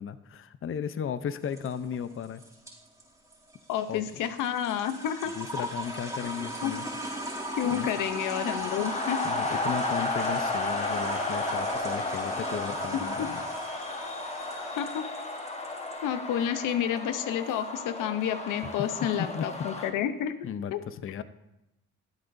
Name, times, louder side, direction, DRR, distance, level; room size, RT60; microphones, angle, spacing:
voice 1, 0.0-2.4 3.9-4.1 5.3-6.9 7.7-7.9 9.2-13.4 19.2-19.5 19.8-19.9 20.4-21.2, left 8 dB, 45° left, 12 dB, 0.7 m, -35 dB
sound 1, 1.4-15.9, right 1 dB, 10° right, 3.4 m, -38 dB
voice 2, 3.7-5.3 5.6-5.7 6.6-6.7 7.6-9.2 13.2-13.3 14.8-15.0 16.0-20.3 20.7-20.8, left 9 dB, 90° left, 11 dB, 0.7 m, -30 dB
sound 2, 5.1-19.9, left 2 dB, 20° left, 1.2 m, -34 dB
21.0 x 8.0 x 2.6 m, 0.90 s
cardioid pair, 90°, 30 cm